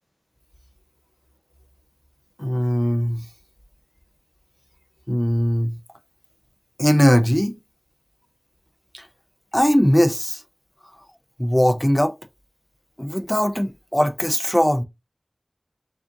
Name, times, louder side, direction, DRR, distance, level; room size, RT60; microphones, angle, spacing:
voice 1, 2.4-3.2 5.1-5.8 6.8-7.5 8.9-9.0 9.5-10.4 11.4-12.1 13.0-14.8, equal, 10° left, 0.5 m, -19 dB
4.8 x 2.5 x 2.6 m
wide cardioid pair, 45°, 0 cm